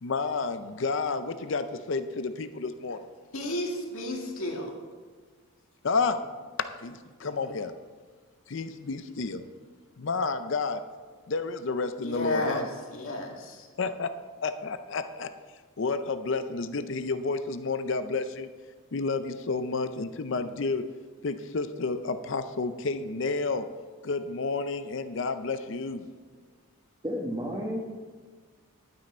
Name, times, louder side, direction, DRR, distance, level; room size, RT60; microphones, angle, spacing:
voice 1, 0.0-3.0 5.8-6.2 6.8-7.7 8.5-9.4 10.0-10.8 11.3-12.7 13.8-14.1 14.4-15.3 15.8-18.5 18.9-20.8 21.2-23.7 24.0-26.0, left 4 dB, 55° left, 10 dB, 0.5 m, -30 dB
voice 2, 3.3-4.7 12.0-12.6 12.9-13.7, left 1 dB, 70° left, 0 dB, 2.1 m, -32 dB
voice 3, 27.0-27.8, equal, 20° right, -4 dB, 1.1 m, -31 dB
11.5 x 9.3 x 4.4 m, 1.5 s
head